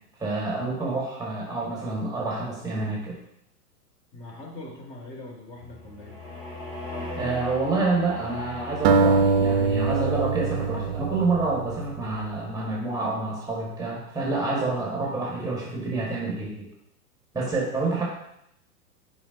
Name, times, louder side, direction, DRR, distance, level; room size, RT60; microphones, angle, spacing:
voice 1, 0.2-3.2 7.1-16.7 17.3-18.0, right 3 dB, 10° right, -3 dB, 1.7 m, -28 dB
voice 2, 4.1-6.1 14.5-14.6 17.4-17.5, left 2 dB, 10° left, -2 dB, 0.4 m, -42 dB
sound 1, 5.5-10.2, left 1 dB, 80° left, 2.3 m, -39 dB
sound 2, 8.8-12.1, right 4 dB, 45° right, 0.5 m, -23 dB
7.0 x 5.2 x 2.8 m, 0.74 s
figure-of-eight pair, 100°, 47 cm